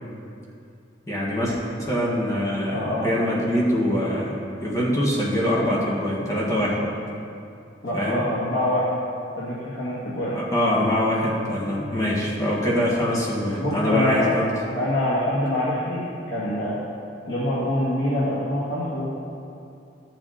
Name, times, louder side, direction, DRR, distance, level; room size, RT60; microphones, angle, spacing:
voice 1, 1.1-4.3 4.6-6.8 7.9-8.2 10.3-14.5, equal, 20° left, -5 dB, 1.8 m, -23 dB
voice 2, 2.7-3.1 6.6-6.9 7.8-8.9 9.4-10.4 13.6-14.3 14.8-16.8 17.3-19.1, left 1 dB, 65° left, -11 dB, 2.2 m, -25 dB
13.0 x 7.5 x 4.2 m, 2.6 s
head